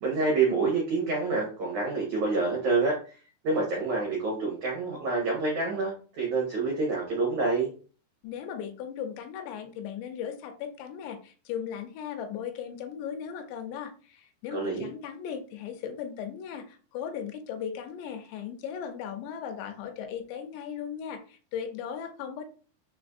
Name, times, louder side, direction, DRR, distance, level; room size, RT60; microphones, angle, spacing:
voice 1, 0.0-3.2 3.4-7.7 14.5-14.9, right 3 dB, 85° right, -2 dB, 1.6 m, -27 dB
voice 2, 8.2-22.4, left 8 dB, 85° left, 6 dB, 2.8 m, -37 dB
6.6 x 2.5 x 2.4 m, 0.38 s
omnidirectional pair, 5.0 m